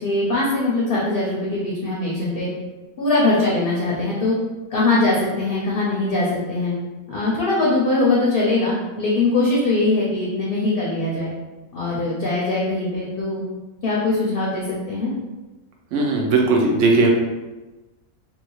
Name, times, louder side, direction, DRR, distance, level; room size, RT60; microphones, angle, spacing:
voice 1, 0.0-2.5 3.0-4.3 4.7-6.7 7.1-11.3 11.7-13.4 13.8-15.1, left 2 dB, 55° left, -5 dB, 0.7 m, -21 dB
voice 2, 15.9-17.1, right 3 dB, 65° right, -1 dB, 0.9 m, -17 dB
2.7 x 2.7 x 3.0 m, 1.1 s
omnidirectional pair, 1.4 m